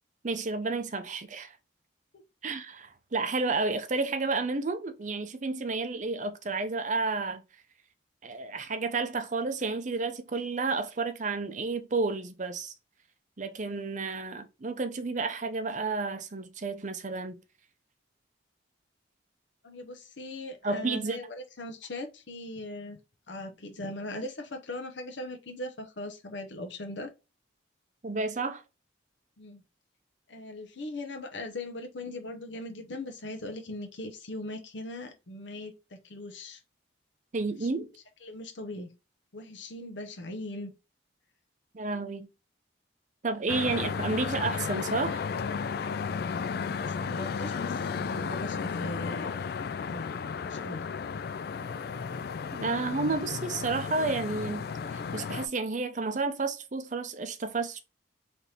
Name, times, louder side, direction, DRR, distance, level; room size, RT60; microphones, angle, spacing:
voice 1, 0.2-1.6 2.4-7.4 8.2-12.7 13.4-17.4 20.6-21.2 28.0-28.6 37.3-37.9 41.7-42.3 43.2-45.2 52.5-54.6 54.9-57.8, right 3 dB, 40° right, 0.6 m, -31 dB
voice 2, 19.6-23.0 23.3-27.1 29.4-29.6 30.3-36.6 37.6-37.7 38.2-38.9 39.3-40.7 46.7-49.4 49.8-50.1 50.4-50.8, left 1 dB, 65° left, 0.7 m, -39 dB
sound 1, 43.5-55.5, left 5 dB, 50° left, 0.3 m, -34 dB
4.1 x 3.3 x 2.8 m
head